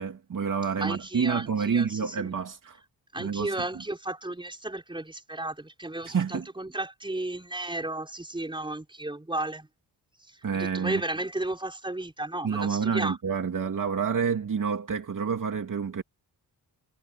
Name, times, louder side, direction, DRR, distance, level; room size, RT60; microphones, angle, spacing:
voice 1, 0.0-2.8 3.2-3.8 6.0-6.5 10.4-11.0 12.4-16.0, right 6 dB, 50° right, 2.7 m, -28 dB
voice 2, 0.8-2.3 3.1-9.7 10.5-13.2, right 2 dB, 10° right, 5.0 m, -34 dB
wide cardioid pair, 145°, 41 cm